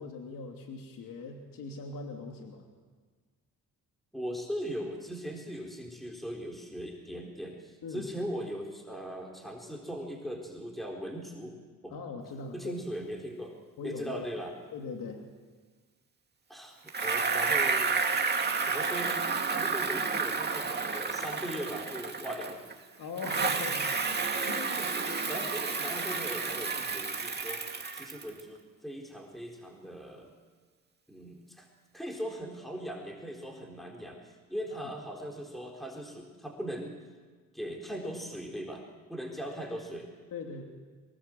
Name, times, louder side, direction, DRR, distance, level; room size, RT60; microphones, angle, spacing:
voice 1, 0.0-2.7 7.8-8.1 11.9-12.8 13.8-14.2 14.7-15.2 23.0-23.9 24.5-25.4 34.8-34.9 40.3-40.6, left 4 dB, 70° left, 2 dB, 3.0 m, -41 dB
voice 2, 4.1-11.5 11.8-12.0 12.5-13.6 13.8-14.5 16.5-17.9 18.6-19.3 19.6-22.7 24.8-27.6 27.9-30.3 31.1-31.7 31.9-37.0 37.5-38.8 39.1-40.1, equal, ahead, 1 dB, 4.0 m, -39 dB
Bicycle, 16.9-22.7 23.2-28.4, right 4 dB, 30° right, 2.3 m, -31 dB
24.0 x 20.0 x 7.8 m, 1.5 s
cardioid pair, 80°, 35 cm